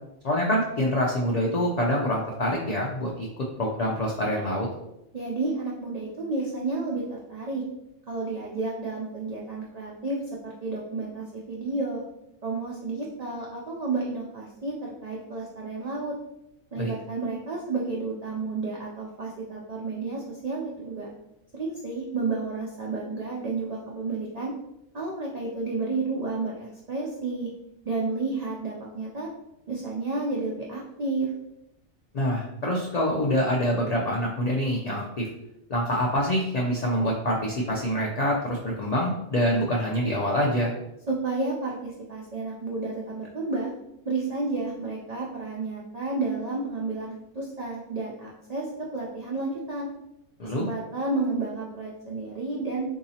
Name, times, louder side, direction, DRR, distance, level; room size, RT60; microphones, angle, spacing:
voice 1, 0.2-3.3 3.6-4.7 16.8-16.9 32.1-35.3 35.7-40.7 50.4-50.6, equal, 85° left, -2 dB, 0.3 m, -25 dB
voice 2, 5.1-7.6 8.1-12.0 12.4-16.2 16.7-21.1 21.6-24.5 24.9-27.5 27.9-29.3 29.7-31.3 41.1-43.7 44.0-49.9 50.4-52.9, right 3 dB, 85° right, -3 dB, 0.3 m, -31 dB
3.9 x 2.7 x 2.7 m, 0.86 s
omnidirectional pair, 1.4 m